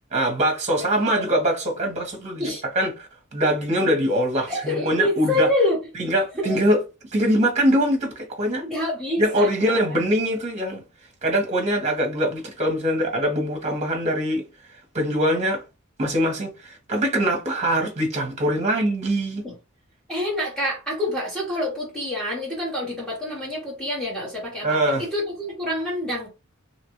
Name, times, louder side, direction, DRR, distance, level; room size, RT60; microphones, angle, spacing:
voice 1, 0.1-5.5 6.0-6.8 7.1-8.6 9.2-10.8 11.2-14.4 14.9-15.6 16.0-19.4 24.6-25.0, equal, 35° right, 1.0 m, -23 dB
voice 2, 4.5-5.8 6.4-6.7 8.6-10.0 19.4-19.5 20.1-26.3, left 1 dB, 5° left, 1.1 m, -27 dB
2.8 x 2.5 x 2.9 m
head